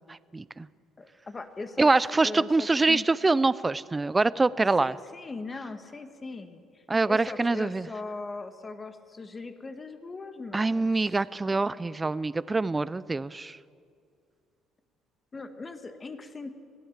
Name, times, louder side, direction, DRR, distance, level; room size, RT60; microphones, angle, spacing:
voice 1, 0.1-0.7 1.8-5.0 6.9-7.9 10.5-13.6, right 3 dB, 15° right, 18 dB, 0.5 m, -25 dB
voice 2, 1.0-1.9 2.2-3.0 4.8-11.2 11.5-11.8 15.3-16.5, left 3 dB, 20° left, 9 dB, 1.5 m, -40 dB
22.0 x 16.0 x 7.3 m, 2.3 s
cardioid pair, 130°, 0 cm